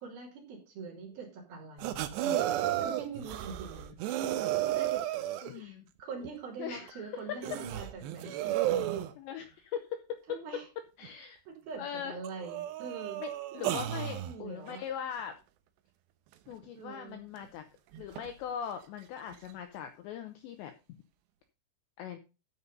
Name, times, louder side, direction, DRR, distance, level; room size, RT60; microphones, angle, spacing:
voice 1, 0.0-2.4 2.8-4.0 4.7-4.9 5.5-8.5 10.3-10.6 11.5-13.2 13.5-14.8 16.8-17.2, right 4 dB, 50° right, -2 dB, 4.6 m, -44 dB
sound 1, 1.8-5.6 6.2-6.3 6.9-7.0 7.4-9.1 11.0-11.1 11.8-11.9 12.2-14.4 17.4-17.5 17.9-18.3 19.3-19.4, right 12 dB, 85° right, 2.5 m, -33 dB
voice 2, 5.4-5.9 6.6-7.2 9.2-10.4 11.0-11.4 11.8-12.2 13.2-15.4 16.5-17.7 18.0-20.7 22.0-22.2, left 8 dB, 80° left, 7 dB, 2.6 m, -40 dB
12.5 x 5.5 x 5.4 m, 0.31 s
omnidirectional pair, 6.0 m